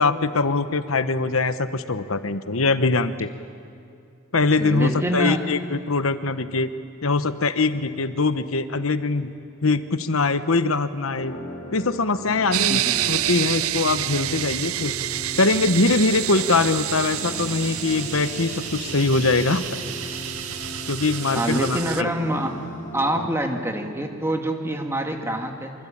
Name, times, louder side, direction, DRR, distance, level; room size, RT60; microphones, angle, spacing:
voice 1, 0.0-3.3 4.3-6.7 7.0-9.3 9.6-11.3 11.7-12.8 13.1-14.9 15.4-19.6 20.9-22.1 23.1-23.3, left 3 dB, 75° left, 11 dB, 1.1 m, -22 dB
voice 2, 4.6-5.4 12.7-13.1 21.3-22.5 22.9-25.7, right 1 dB, 15° right, 3 dB, 2.1 m, -26 dB
sound 1, 11.1-23.1, left 1 dB, 40° left, 3.7 m, -38 dB
sound 2, 12.5-22.0, right 13 dB, 85° right, 0.5 m, -28 dB
sound 3, 14.7-22.5, right 3 dB, 40° right, 4.7 m, -41 dB
25.5 x 23.5 x 8.8 m, 2.4 s
head